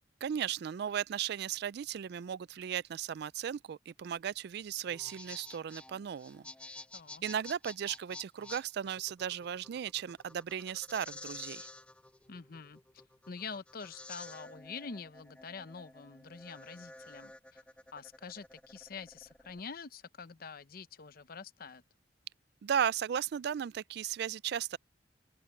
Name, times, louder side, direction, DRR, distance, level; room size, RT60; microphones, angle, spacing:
voice 1, 0.2-6.5 7.2-11.7 22.6-24.8, right 9 dB, 60° right, 0.3 m, -36 dB
sound 1, 4.8-19.6, left 2 dB, 5° left, 1.1 m, -50 dB
voice 2, 12.3-12.8 13.3-17.6 17.9-21.8, left 5 dB, 55° left, 0.8 m, -46 dB
open air
head